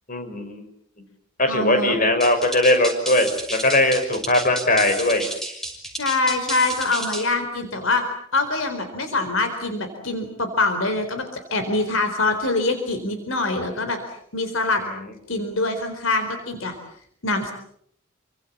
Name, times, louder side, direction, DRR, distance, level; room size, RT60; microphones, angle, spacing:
voice 1, 0.1-0.6 1.4-5.3, left 1 dB, 40° left, 6 dB, 6.2 m, -20 dB
voice 2, 1.5-2.0 5.9-8.0 8.3-11.2 11.5-14.0 14.3-14.8 15.3-16.8 17.2-17.5, left 2 dB, 70° left, 7 dB, 4.1 m, -24 dB
sound 1, 2.2-7.3, right 1 dB, ahead, 5.9 m, -32 dB
29.0 x 25.0 x 7.4 m, 0.69 s
head